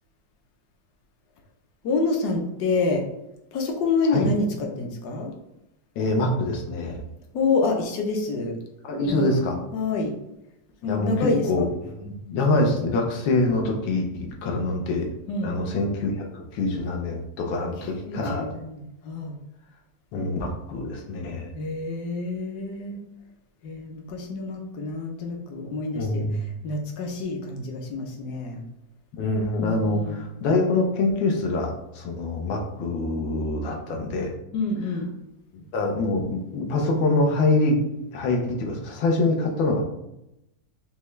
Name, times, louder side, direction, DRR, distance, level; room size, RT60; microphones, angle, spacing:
voice 1, 1.8-3.0 3.5-5.3 7.3-8.6 9.1-9.4 9.7-10.1 10.8-11.7 15.3-15.5 18.0-19.4 21.5-23.0 23.6-26.3 26.6-28.6 29.6-30.3 34.5-35.1, left 3 dB, 65° left, 2 dB, 1.1 m, -27 dB
voice 2, 6.0-7.0 8.8-9.6 10.8-15.1 15.4-18.5 20.1-21.5 25.9-26.4 29.1-34.3 35.5-37.8 38.1-39.8, left 2 dB, 90° left, 1 dB, 1.5 m, -25 dB
5.5 x 2.2 x 3.1 m, 0.87 s
omnidirectional pair, 2.1 m